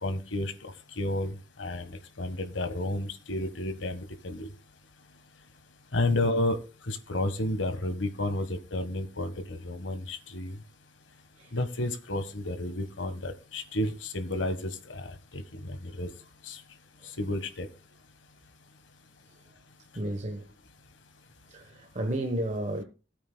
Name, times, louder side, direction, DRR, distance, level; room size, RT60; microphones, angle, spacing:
voice 1, 0.0-4.5 5.9-10.6 11.5-16.1 16.4-16.6 17.2-17.7, left 1 dB, 85° left, 1.5 m, -32 dB
voice 2, 20.0-20.5 21.5-22.8, right 1 dB, 40° right, 1.1 m, -32 dB
18.0 x 8.6 x 2.3 m
head